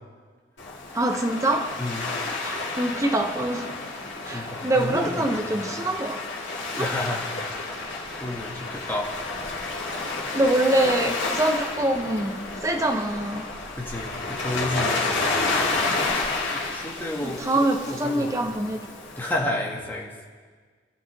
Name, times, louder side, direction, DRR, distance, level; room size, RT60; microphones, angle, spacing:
Waves surf, 0.6-19.4, left 3 dB, 80° left, 3.2 m, -30 dB
voice 1, 0.9-1.7 2.0-2.1 2.4-3.7 4.2-6.2 6.8-6.9 10.3-13.5 17.2-18.9, right 1 dB, 15° right, 5 dB, 0.7 m, -25 dB
voice 2, 4.3-5.6 6.8-7.7 8.2-9.1 13.8-15.2 16.5-18.3 19.2-20.1, left 1 dB, 10° left, -3 dB, 2.0 m, -31 dB
27.5 x 12.5 x 3.5 m, 1.5 s
head